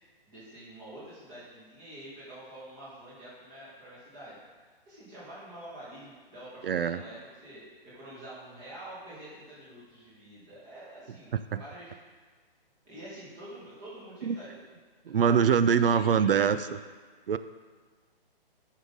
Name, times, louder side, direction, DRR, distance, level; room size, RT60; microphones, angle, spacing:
voice 1, 0.3-4.4 4.9-11.9 12.9-14.6 15.0-16.7, right 1 dB, 15° right, -9 dB, 1.8 m, -47 dB
voice 2, 6.6-7.0 11.5-11.6 14.2-14.4 15.1-16.6 17.3-17.4, right 7 dB, 70° right, 13 dB, 0.5 m, -23 dB
9.7 x 5.5 x 3.9 m, 1.5 s
hypercardioid pair, 175°, 29 cm